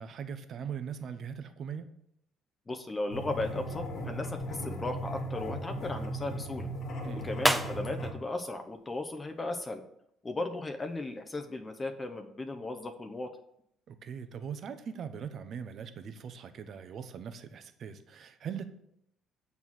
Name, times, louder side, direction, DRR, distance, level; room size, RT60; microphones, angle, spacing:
voice 1, 0.0-1.9 7.0-7.3 13.9-18.6, right 7 dB, 55° right, 0.7 m, -40 dB
voice 2, 2.7-6.7 7.1-9.8 10.2-13.3, left 2 dB, 25° left, 0.8 m, -36 dB
sound 1, 3.1-8.1, equal, 70° left, 2.0 m, -37 dB
sound 2, 7.3-9.8, right 1 dB, 5° right, 0.6 m, -37 dB
7.0 x 4.2 x 6.2 m
supercardioid pair, 80°, 0 cm